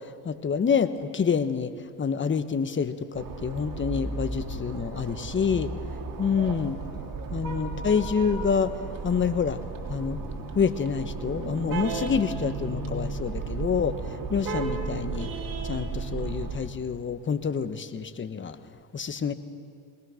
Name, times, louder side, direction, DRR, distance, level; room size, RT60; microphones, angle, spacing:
voice 1, 0.2-1.7 2.0-5.7 6.2-6.8 7.3-8.7 9.0-9.6 9.9-10.2 10.5-14.0 14.3-15.3 15.6-18.6 18.9-19.3, left 6 dB, 30° left, 11 dB, 1.1 m, -27 dB
sound 1, 3.1-16.6, right 4 dB, 50° right, 3.2 m, -34 dB
21.5 x 19.0 x 6.4 m, 2.4 s
supercardioid pair, 80°, 42 cm